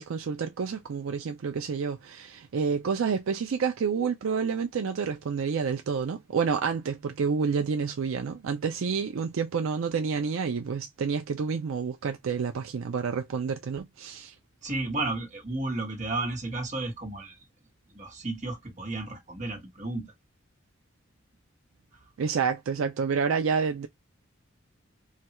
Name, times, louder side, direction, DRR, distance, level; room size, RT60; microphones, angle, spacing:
voice 1, 0.0-14.3 22.2-23.9, right 5 dB, 70° right, 0.4 m, -29 dB
voice 2, 14.6-17.4 17.9-20.1 21.9-22.0, right 2 dB, 35° right, 1.1 m, -33 dB
3.3 x 2.3 x 2.8 m
head